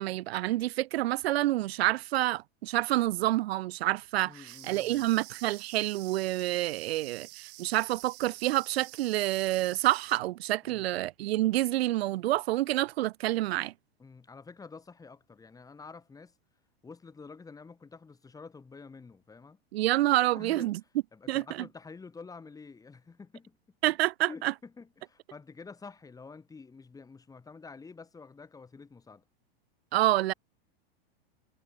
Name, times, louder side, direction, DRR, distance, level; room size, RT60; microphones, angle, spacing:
voice 1, 0.0-13.7 19.7-20.8 21.3-21.7 23.8-24.5 29.9-30.3, right 16 dB, 80° right, 0.6 m, -28 dB
voice 2, 4.2-5.1 10.6-10.9 14.0-16.3 16.8-19.6 20.3-20.8 21.1-23.6 23.8-23.9 24.3-29.2, left 4 dB, 10° left, 2.7 m, -48 dB
sound 1, 4.5-10.2, right 21 dB, 60° right, 1.3 m, -49 dB
supercardioid pair, 135°, 30 cm